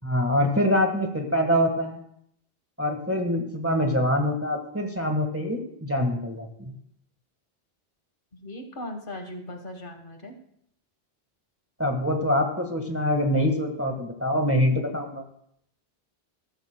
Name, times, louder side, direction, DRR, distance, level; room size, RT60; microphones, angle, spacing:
voice 1, 0.0-2.0 2.8-6.7 11.8-15.2, equal, 15° right, 3 dB, 1.4 m, -25 dB
voice 2, 8.3-10.4, left 1 dB, 50° left, 4 dB, 1.5 m, -38 dB
20.5 x 13.5 x 2.2 m, 0.71 s
omnidirectional pair, 1.1 m